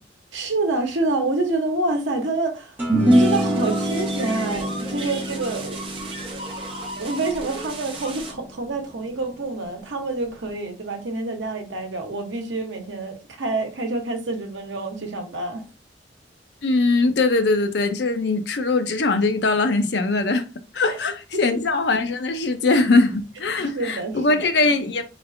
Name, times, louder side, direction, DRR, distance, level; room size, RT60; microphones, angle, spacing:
voice 1, 0.3-2.8 3.1-5.8 7.0-15.6 20.9-21.0 23.6-24.5, right 2 dB, 80° right, 0.9 m, -27 dB
sound 1, 2.8-9.3, right 1 dB, 10° right, 1.2 m, -24 dB
sound 2, 3.1-8.3, right 2 dB, 30° right, 0.8 m, -35 dB
voice 2, 16.6-20.4 20.7-25.0, left 3 dB, 60° left, 0.5 m, -21 dB
4.1 x 3.2 x 2.5 m
head